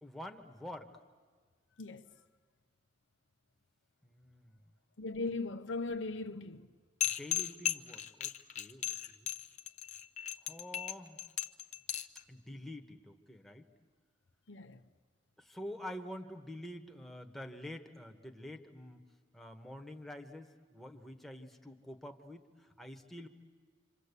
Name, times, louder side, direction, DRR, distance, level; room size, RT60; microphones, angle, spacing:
voice 1, 0.0-0.9 4.0-4.6 7.0-9.3 10.4-11.2 12.3-13.7 15.4-19.0 19.3-23.3, left 1 dB, ahead, 1.3 m, -47 dB
voice 2, 1.8-2.1 5.0-6.7 14.5-14.8, left 3 dB, 90° left, 1.0 m, -38 dB
sound 1, 7.0-12.2, left 12 dB, 40° left, 0.8 m, -36 dB
27.0 x 26.5 x 8.3 m
head